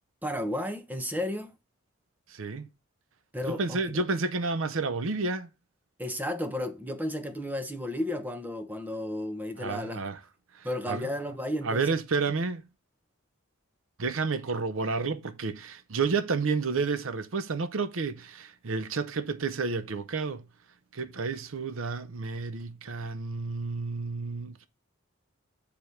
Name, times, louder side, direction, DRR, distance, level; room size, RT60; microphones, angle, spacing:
voice 1, 0.2-1.5 3.3-4.0 6.0-10.0 10.6-12.0, left 1 dB, 10° right, 0.8 m, -33 dB
voice 2, 2.3-2.7 3.5-5.5 9.6-10.2 10.9-11.0 11.6-12.6 14.0-20.4 20.9-24.7, right 4 dB, 75° right, 0.6 m, -30 dB
6.7 x 4.9 x 5.6 m
head